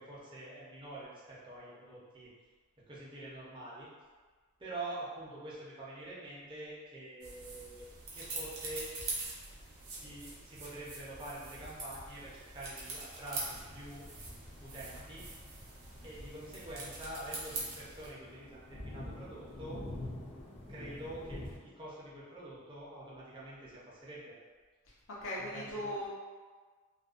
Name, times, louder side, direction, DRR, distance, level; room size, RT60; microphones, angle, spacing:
voice 1, 0.0-2.3 2.9-3.9 4.6-7.8 8.1-8.9 9.9-14.0 14.6-15.3 16.0-19.8 20.7-24.4 25.4-25.9, right 1 dB, 20° right, -8 dB, 0.6 m, -46 dB
sound 1, 7.2-18.1, right 3 dB, 80° right, 0.7 m, -44 dB
sound 2, 13.3-21.6, left 1 dB, 25° left, 0.5 m, -48 dB
voice 2, 24.9-26.1, left 1 dB, 65° left, -5 dB, 0.6 m, -39 dB
2.4 x 2.2 x 2.4 m, 1.5 s
head